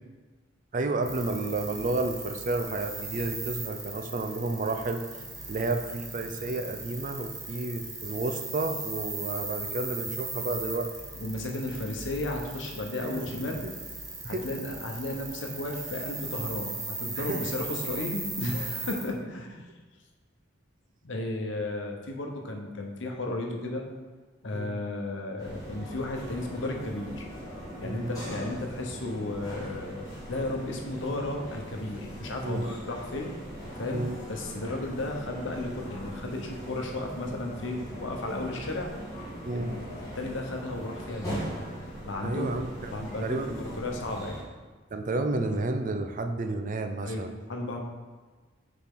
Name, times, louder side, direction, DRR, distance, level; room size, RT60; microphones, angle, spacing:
voice 1, 0.7-5.0 5.5-10.9 13.2-13.7 14.2-14.4 17.2-17.4 24.5-24.8 27.8-28.1 32.4-32.8 33.9-34.2 39.4-39.8 42.2-43.8 44.9-47.3, right 2 dB, 45° right, 6 dB, 0.5 m, -31 dB
sound 1, 1.0-19.1, right 3 dB, 15° right, 1.2 m, -38 dB
voice 2, 11.2-13.6 14.2-19.7 21.0-23.8 24.4-27.2 27.8-33.3 33.8-38.9 39.5-39.8 40.1-41.6 42.0-42.6 42.9-44.4 47.0-47.8, left 2 dB, 75° left, 2 dB, 1.0 m, -34 dB
sound 2, 25.4-44.4, right 1 dB, 20° left, 1.9 m, -40 dB
7.2 x 4.3 x 3.7 m, 1.4 s
head